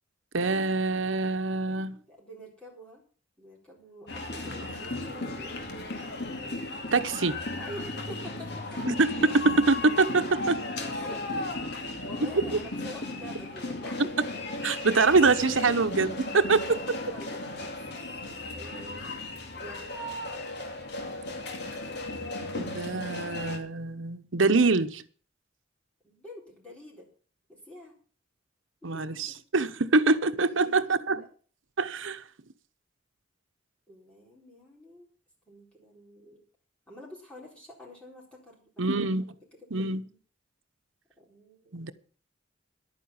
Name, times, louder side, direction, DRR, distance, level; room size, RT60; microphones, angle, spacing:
voice 1, 0.3-2.0 6.9-7.4 8.9-10.6 12.2-12.4 14.6-17.0 22.5-25.0 28.8-31.2 31.8-32.2 38.8-39.3 39.7-40.0 41.7-41.9, right 3 dB, 85° right, 1.0 m, -25 dB
voice 2, 1.7-3.0 3.4-5.7 7.6-8.8 10.9-11.3 12.0-14.1 16.4-19.2 19.6-19.9 26.0-27.1 27.5-27.9 28.9-29.3 30.4-31.3 33.9-35.0 35.5-36.4 36.9-38.8 39.6-40.2 41.2-41.9, left 1 dB, 5° left, 4.3 m, -47 dB
sound 1, 4.1-23.6, left 2 dB, 60° left, 2.2 m, -35 dB
11.5 x 9.2 x 7.1 m
head